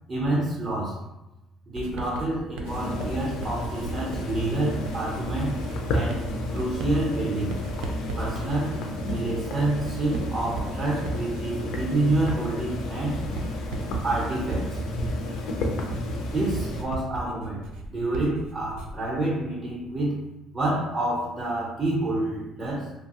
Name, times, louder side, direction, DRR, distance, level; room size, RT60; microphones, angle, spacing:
voice 1, 0.1-1.0 1.7-5.6 5.9-7.6 8.2-8.8 9.1-13.2 14.0-14.8 16.3-20.2 20.5-22.9, right 2 dB, 20° right, -5 dB, 0.6 m, -28 dB
Writing, 1.8-19.1, right 3 dB, 80° right, 0.4 m, -37 dB
sound 1, 2.7-16.8, left 1 dB, 65° left, 0.4 m, -31 dB
2.8 x 2.3 x 2.8 m, 0.96 s
cardioid pair, 170°, 0 cm